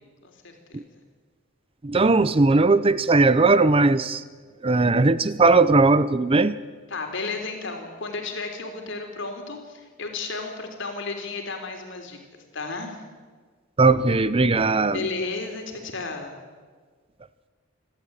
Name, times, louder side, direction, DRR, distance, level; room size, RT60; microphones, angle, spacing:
voice 1, 0.2-0.5 6.9-12.2 12.5-13.0 14.9-16.4, left 3 dB, 65° left, 4 dB, 3.8 m, -33 dB
voice 2, 1.8-4.2 4.6-6.6 13.8-15.1, right 3 dB, 25° right, 15 dB, 0.6 m, -18 dB
28.5 x 12.5 x 8.8 m, 1.5 s
head